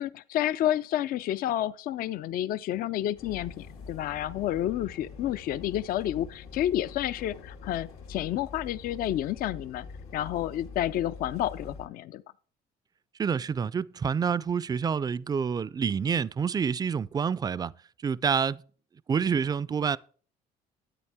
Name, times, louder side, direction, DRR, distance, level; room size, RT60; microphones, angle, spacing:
voice 1, 0.0-9.9 10.1-12.2, left 12 dB, 60° left, 0.4 m, -30 dB
sound 1, 3.1-11.9, left 4 dB, 90° left, 2.3 m, -45 dB
voice 2, 13.2-17.7 18.0-18.6 19.1-20.0, right 6 dB, 25° right, 0.3 m, -27 dB
9.9 x 8.7 x 3.5 m
cardioid pair, 110°, 17 cm